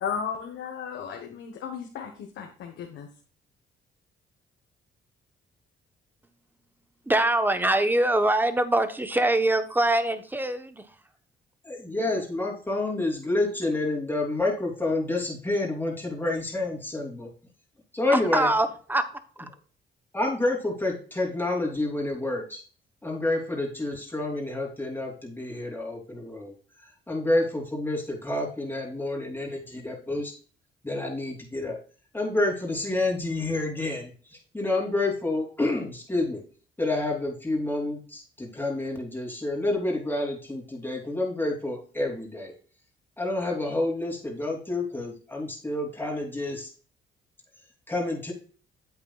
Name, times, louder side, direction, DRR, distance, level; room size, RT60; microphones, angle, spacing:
voice 1, 0.0-3.1, left 7 dB, 75° left, 3 dB, 1.3 m, -35 dB
voice 2, 7.1-10.9 18.1-19.0, right 1 dB, 10° right, 10 dB, 1.0 m, -23 dB
voice 3, 11.6-17.3 17.9-18.5 20.1-22.6 23.0-26.5 26.8-30.3 30.8-31.8 32.1-36.4 36.8-42.5 43.2-46.7 47.9-48.3, left 2 dB, 10° left, -1 dB, 3.2 m, -29 dB
8.7 x 8.2 x 2.4 m, 0.41 s
cardioid pair, 90°, 20 cm